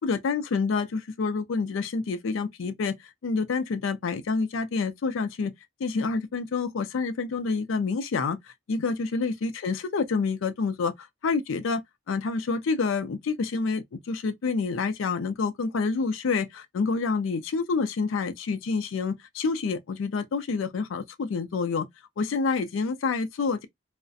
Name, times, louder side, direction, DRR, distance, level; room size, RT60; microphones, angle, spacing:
voice 1, 0.0-3.0 3.2-5.5 5.8-8.4 8.7-21.9 22.2-23.7, left 4 dB, 85° left, 0.4 m, -28 dB
2.4 x 2.1 x 2.5 m
head